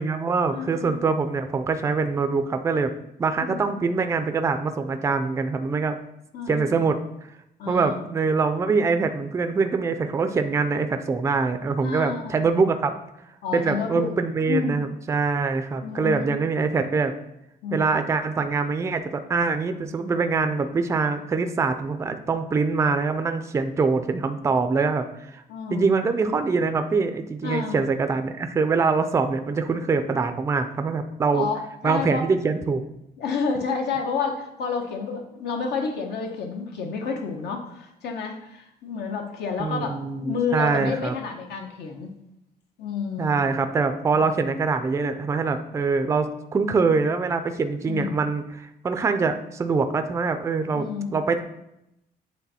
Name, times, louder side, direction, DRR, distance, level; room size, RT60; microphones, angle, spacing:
voice 1, 0.0-2.9 3.2-6.0 6.5-7.0 7.7-12.9 13.5-17.1 17.7-25.4 25.7-31.5 31.8-32.8 39.6-41.1 43.2-51.4, right 4 dB, 15° right, 8 dB, 0.3 m, -24 dB
voice 2, 0.5-1.0 3.4-3.6 6.3-6.8 7.6-7.9 11.8-12.4 13.4-14.1 14.4-14.8 15.8-16.5 17.6-18.0 25.5-25.9 27.4-27.8 31.3-32.3 33.2-42.2 42.8-43.4 47.9-48.2 50.7-51.3, left 5 dB, 80° left, 2 dB, 1.0 m, -30 dB
8.3 x 3.5 x 4.1 m, 0.84 s
cardioid pair, 175°, 17 cm